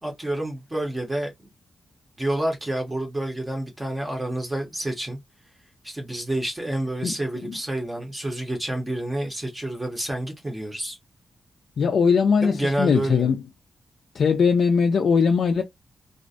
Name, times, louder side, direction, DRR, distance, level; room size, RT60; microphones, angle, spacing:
voice 1, 0.0-1.5 2.2-5.2 5.8-11.0 12.4-13.3, right 1 dB, 15° right, 0.6 m, -29 dB
voice 2, 11.8-13.4 14.1-15.6, left 5 dB, 60° left, 0.3 m, -20 dB
2.4 x 2.0 x 2.5 m
wide cardioid pair, 175°, 0 cm